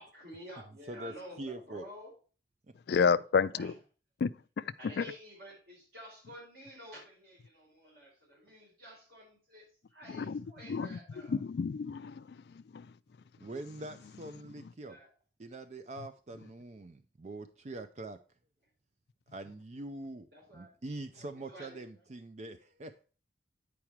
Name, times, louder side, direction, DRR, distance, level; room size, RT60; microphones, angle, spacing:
voice 1, 0.0-2.1 3.6-3.7 4.8-11.4 14.8-15.1 20.3-20.7 21.1-22.0, equal, 55° right, 4.1 m, -50 dB
voice 2, 0.9-1.9 13.4-15.0 15.4-18.2 19.3-20.3 20.5-23.0, right 2 dB, 35° right, 0.4 m, -44 dB
voice 3, 2.9-3.7 4.2-4.3 4.6-4.7 5.0-5.1 10.2-10.4 10.7-11.0 11.3-12.2 12.7-12.8, left 5 dB, 60° left, 0.3 m, -29 dB
8.6 x 4.8 x 4.5 m
head